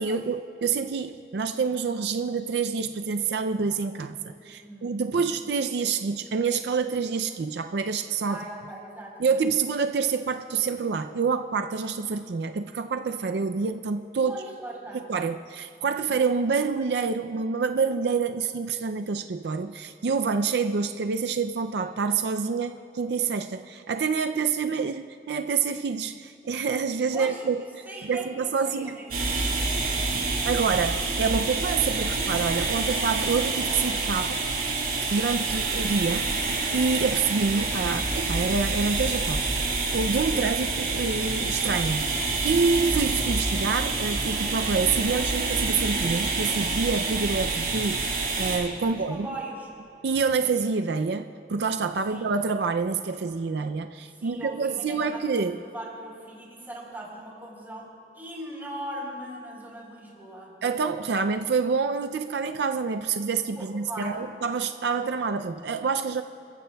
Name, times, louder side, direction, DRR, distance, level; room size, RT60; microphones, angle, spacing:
voice 1, 0.0-8.4 9.2-14.4 15.1-29.0 30.1-34.4 35.1-49.3 50.0-55.6 60.6-66.2, right 5 dB, 75° right, 7 dB, 0.4 m, -27 dB
voice 2, 4.5-5.5 8.3-9.4 14.2-15.0 27.1-27.4 27.9-29.4 48.8-49.7 52.1-52.3 54.1-57.9 58.1-60.5 63.6-64.3, right 1 dB, 10° right, -4 dB, 3.8 m, -40 dB
sound 1, 29.1-48.6, right 3 dB, 55° right, 4.2 m, -27 dB
28.5 x 15.0 x 2.3 m, 2.7 s
head